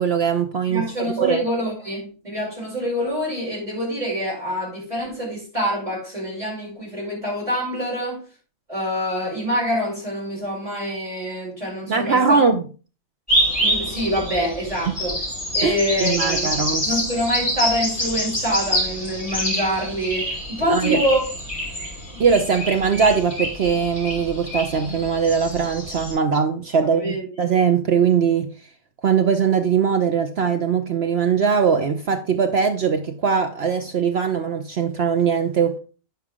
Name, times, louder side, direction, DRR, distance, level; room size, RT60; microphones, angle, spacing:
voice 1, 0.0-0.8 1.2-1.4 11.9-12.6 14.9-15.0 15.6-17.0 20.7-21.0 22.2-28.5 29.0-35.8, right 6 dB, 55° right, 0.9 m, -21 dB
voice 2, 0.7-8.2 8.7-12.4 13.6-15.2 15.5-16.5 16.8-21.2 26.9-27.3, equal, 25° right, 5.4 m, -25 dB
sound 1, 13.3-26.1, equal, 10° left, 5.2 m, -26 dB
9.1 x 6.9 x 3.6 m
omnidirectional pair, 1.4 m